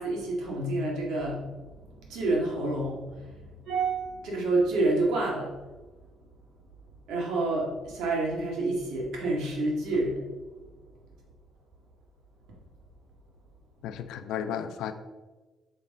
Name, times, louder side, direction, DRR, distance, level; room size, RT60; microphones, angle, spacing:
voice 1, 0.0-1.4 2.1-5.5 7.1-10.3, right 2 dB, 85° right, -2 dB, 1.9 m, -28 dB
voice 2, 13.8-14.9, left 9 dB, 90° left, 10 dB, 0.5 m, -33 dB
6.3 x 5.6 x 3.6 m, 1.2 s
cardioid pair, 90°, 0 cm